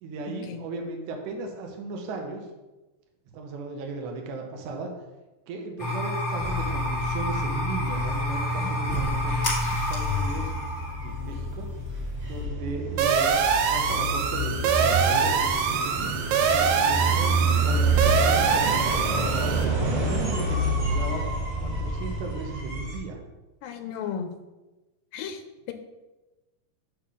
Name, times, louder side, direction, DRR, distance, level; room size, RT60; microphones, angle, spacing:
voice 1, 0.0-2.5 3.3-4.9 5.5-9.4 9.7-10.5 11.0-11.7 12.2-15.4 15.8-16.1 16.5-21.2 21.6-23.2, right 3 dB, 75° right, 2 dB, 2.1 m, -36 dB
sound 1, 5.8-12.4, left 1 dB, 60° left, 0.7 m, -29 dB
sound 2, 6.4-23.0, right 2 dB, 50° right, 2.1 m, -29 dB
sound 3, 13.0-19.7, right 6 dB, 90° right, 2.4 m, -24 dB
voice 2, 23.6-24.3 25.1-25.4 25.7-25.8, left 7 dB, 85° left, 6 dB, 2.3 m, -33 dB
6.7 x 3.6 x 6.1 m, 1.1 s
omnidirectional pair, 4.0 m